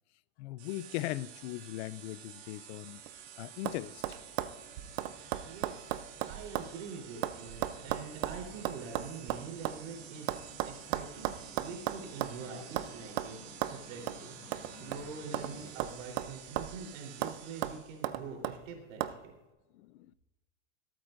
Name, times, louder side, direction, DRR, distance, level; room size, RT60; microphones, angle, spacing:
voice 1, 0.4-3.0 3.4-4.0 19.7-20.1, left 16 dB, 60° left, 0.5 m, -39 dB
sound 1, 0.6-18.2, right 10 dB, 70° right, 2.1 m, -51 dB
sound 2, 2.9-3.3 3.7-3.8 4.0-6.7 7.0-9.8 10.3-12.4 12.8-12.9 13.2-13.3 13.6-13.8 14.1-14.2 14.5-15.5 15.8-16.8 17.2-17.4 17.6-18.6 19.0-19.2, right 13 dB, 50° right, 0.6 m, -35 dB
sound 3, 3.6-15.7, left 2 dB, 25° left, 4.0 m, -55 dB
voice 2, 5.3-14.3 14.7-19.3, right 5 dB, 85° right, 3.8 m, -45 dB
25.5 x 8.8 x 2.6 m
supercardioid pair, 160°, 37 cm